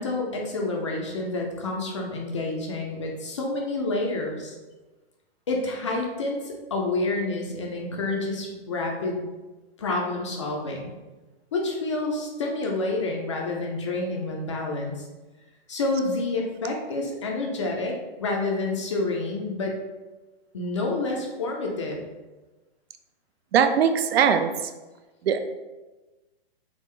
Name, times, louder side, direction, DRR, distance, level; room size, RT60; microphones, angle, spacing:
voice 1, 0.0-4.6 5.5-9.2 9.8-10.9 11.5-15.0 15.7-19.7 20.5-22.0, left 2 dB, 30° left, 0 dB, 0.3 m, -28 dB
voice 2, 23.5-24.7 25.2-25.4, right 7 dB, 75° right, 7 dB, 0.5 m, -21 dB
3.6 x 2.4 x 3.2 m, 1.2 s
hypercardioid pair, 160°, 31 cm